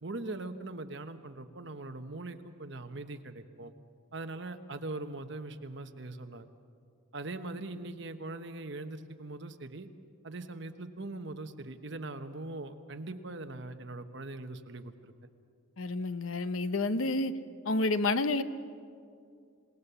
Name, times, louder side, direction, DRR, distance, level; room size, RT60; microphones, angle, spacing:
voice 1, 0.0-3.7 4.1-6.5 7.1-9.9 10.2-15.1, right 2 dB, 55° right, 8 dB, 1.1 m, -41 dB
voice 2, 15.8-17.3 17.6-18.4, left 2 dB, 80° left, 12 dB, 0.9 m, -29 dB
27.5 x 18.5 x 6.9 m, 2.3 s
head